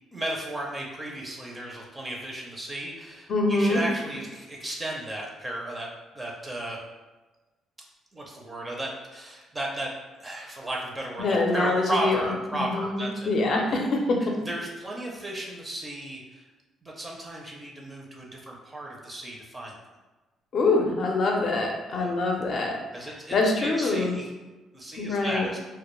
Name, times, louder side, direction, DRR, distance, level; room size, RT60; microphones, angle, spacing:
voice 1, 0.1-5.9 6.1-6.8 8.1-9.9 10.2-13.3 13.7-13.8 14.4-16.4 16.8-19.8 21.9-22.1 22.9-24.3 24.7-25.6, right 1 dB, 20° right, -1 dB, 0.5 m, -34 dB
voice 2, 3.3-3.8 11.2-12.2 12.5-14.3 20.5-22.8 23.3-24.2 25.0-25.5, left 2 dB, 55° left, 1 dB, 0.5 m, -24 dB
2.2 x 2.1 x 3.0 m, 1.2 s
cardioid pair, 85°, 0 cm